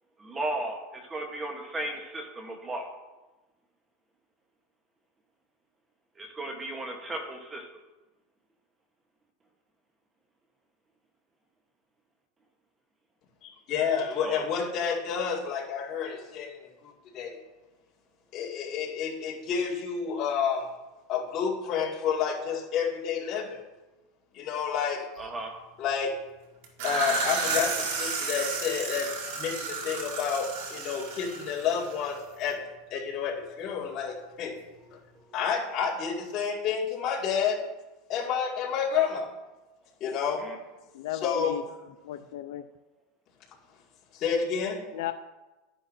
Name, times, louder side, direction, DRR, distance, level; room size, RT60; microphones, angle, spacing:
voice 1, 0.2-2.9 6.2-7.7 14.2-14.5 25.2-25.5 35.2-35.3 40.4-40.6, right 1 dB, 15° right, 4 dB, 1.1 m, -35 dB
voice 2, 13.4-16.6 16.8-17.4 18.3-20.7 21.1-23.6 24.3-25.0 25.8-26.2 26.8-29.1 29.4-32.6 32.9-34.5 35.3-37.6 38.1-39.3 40.0-40.4 41.2-41.5 44.1-44.9, left 7 dB, 35° left, -3 dB, 2.2 m, -29 dB
sound 1, 26.6-32.2, right 4 dB, 70° right, 2.0 m, -32 dB
voice 3, 40.9-41.6 42.0-42.6 44.9-45.1, left 13 dB, 70° left, 9 dB, 0.4 m, -35 dB
11.5 x 9.8 x 2.7 m, 1.1 s
supercardioid pair, 150°, 0 cm